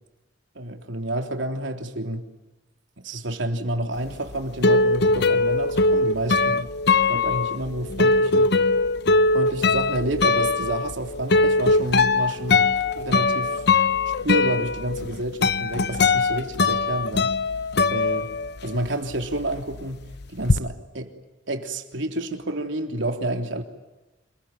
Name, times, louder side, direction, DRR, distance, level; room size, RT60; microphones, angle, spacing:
voice 1, 0.6-2.2 3.0-6.7 7.1-8.6 9.3-13.6 14.1-17.3 17.9-18.3 18.6-20.0 20.3-21.1 21.5-23.6, right 1 dB, 85° right, 3.4 m, -29 dB
sound 1, 4.1-18.9 19.1-20.6, left 3 dB, 60° left, 0.9 m, -21 dB
28.0 x 22.0 x 9.4 m
head